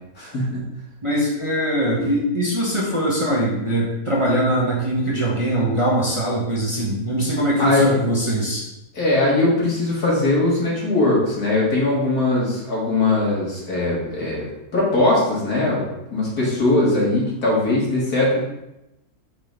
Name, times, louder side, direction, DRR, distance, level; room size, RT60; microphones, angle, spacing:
voice 1, 0.2-0.6 7.6-8.0 8.9-14.5 14.7-18.4, left 2 dB, 70° left, -5 dB, 2.5 m, -20 dB
voice 2, 1.0-8.7, right 1 dB, 20° right, -6 dB, 1.2 m, -22 dB
5.1 x 4.0 x 5.1 m, 0.91 s
omnidirectional pair, 1.6 m